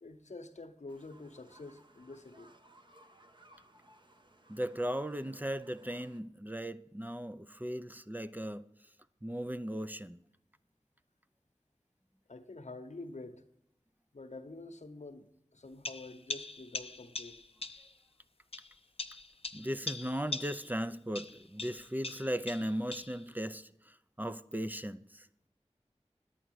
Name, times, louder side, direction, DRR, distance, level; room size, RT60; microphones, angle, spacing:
voice 1, 0.0-2.5 12.3-13.4 14.1-17.4, left 2 dB, 80° left, 0.9 m, -47 dB
sound 1, 0.9-6.2, right 1 dB, 40° right, 1.0 m, -62 dB
voice 2, 4.5-8.6 9.2-10.2 19.5-25.3, equal, 15° right, 0.5 m, -37 dB
sound 2, 15.8-17.9 18.5-20.8 21.1-23.2, left 3 dB, 55° left, 0.6 m, -42 dB
9.9 x 9.1 x 6.2 m
wide cardioid pair, 40°, 12 cm